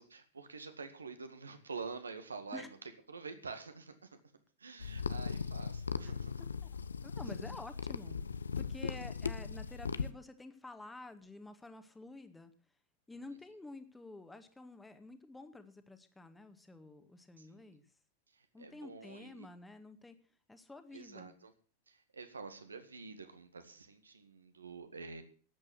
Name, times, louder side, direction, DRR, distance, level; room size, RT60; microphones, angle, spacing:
voice 1, 0.0-2.7 3.1-4.1 4.6-6.4 17.4-17.8 18.3-19.5 20.9-21.5 21.9-25.2, right 4 dB, 75° right, 8 dB, 2.0 m, -47 dB
sound 1, 4.8-10.1, left 5 dB, 75° left, 0.6 m, -38 dB
voice 2, 7.0-8.2 8.6-12.5 13.1-17.9 18.5-20.2 20.5-21.4, left 2 dB, 10° left, 8 dB, 1.8 m, -50 dB
12.5 x 8.7 x 7.9 m, 0.42 s
figure-of-eight pair, 90°, 0 cm